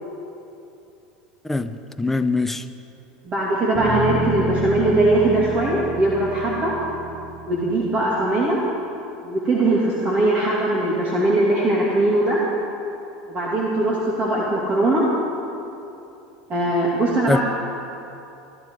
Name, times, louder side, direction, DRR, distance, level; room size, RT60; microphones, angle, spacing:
voice 1, 2.0-2.6 17.3-17.4, left 3 dB, 5° left, 9 dB, 0.8 m, -21 dB
voice 2, 3.2-6.7 7.5-8.6 9.2-12.4 13.3-15.0 16.5-17.4, right 2 dB, 35° right, -5 dB, 2.8 m, -20 dB
sound 1, 3.7-8.1, right 1 dB, 65° right, 3.3 m, -30 dB
21.5 x 12.0 x 4.9 m, 2.8 s
hypercardioid pair, 100°, 4 cm